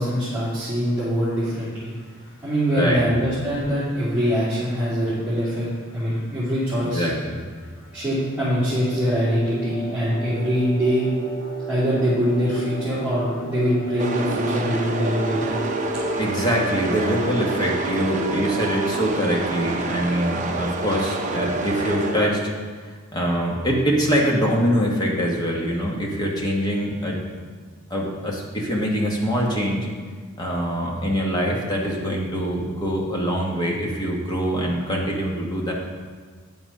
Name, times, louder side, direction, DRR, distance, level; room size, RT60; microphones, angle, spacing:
voice 1, 0.0-1.9 2.4-7.1 7.9-11.1 11.7-15.6, equal, 5° right, -15 dB, 2.8 m, -23 dB
sound 1, 1.8-19.1, right 3 dB, 65° left, 1.8 m, -35 dB
voice 2, 2.7-3.1 6.8-7.5 16.2-22.4 23.1-27.2 27.9-29.9 30.4-35.7, equal, 20° left, -2 dB, 1.5 m, -24 dB
sound 2, 14.0-22.6, right 3 dB, 35° right, 0.7 m, -28 dB
9.0 x 6.1 x 5.6 m, 1.5 s
head